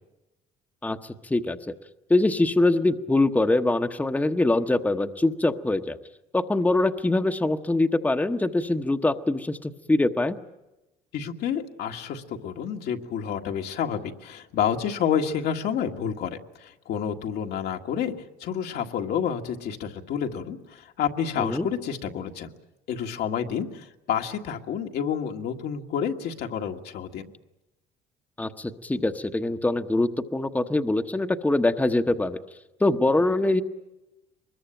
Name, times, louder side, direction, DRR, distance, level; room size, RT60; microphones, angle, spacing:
voice 1, 0.8-1.7 2.1-6.0 6.3-10.3 21.4-21.7 28.4-32.4 32.8-33.6, left 2 dB, 10° left, 6 dB, 1.0 m, -23 dB
voice 2, 11.1-18.1 18.4-22.5 22.9-27.3, left 8 dB, 70° left, 3 dB, 1.8 m, -29 dB
24.0 x 21.5 x 9.0 m, 0.97 s
cardioid pair, 110°, 17 cm